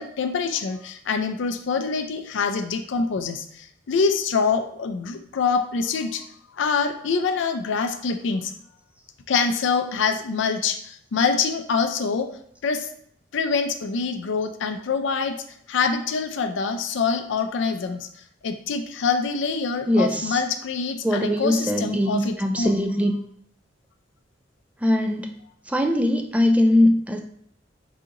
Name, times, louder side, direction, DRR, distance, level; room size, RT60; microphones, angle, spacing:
voice 1, 0.0-6.2 6.6-8.5 9.3-12.3 12.6-12.9 13.3-15.4 15.7-18.1 18.4-22.8, left 5 dB, 70° left, 7 dB, 0.4 m, -25 dB
voice 2, 19.9-20.4 21.0-23.1 24.8-25.3 25.7-27.2, left 1 dB, 5° right, 4 dB, 0.3 m, -21 dB
4.9 x 2.8 x 2.5 m, 0.67 s
head